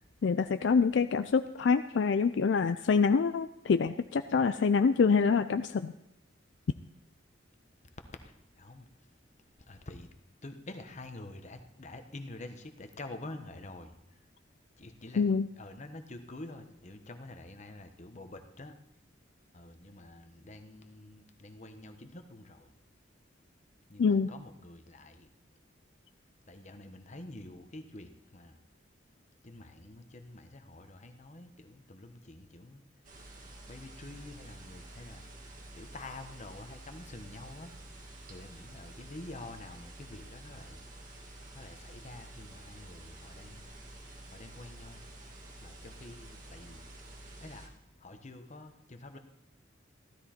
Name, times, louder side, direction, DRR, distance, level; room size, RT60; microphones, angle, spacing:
voice 1, 0.2-5.9 15.2-15.5 24.0-24.3, left 5 dB, 65° left, 10 dB, 0.4 m, -26 dB
voice 2, 8.1-9.1 9.7-10.1 10.4-14.2 14.8-15.2 15.6-18.7 19.5-22.7 23.9-25.3 26.5-28.6 29.4-32.8 33.6-37.7 38.3-40.8 41.5-43.7 44.3-45.0 45.6-46.8 47.4-49.2, left 2 dB, 40° left, 7 dB, 1.1 m, -48 dB
sound 1, 33.0-47.7, right 1 dB, 45° right, 1.9 m, -50 dB
15.0 x 13.0 x 4.4 m, 0.85 s
head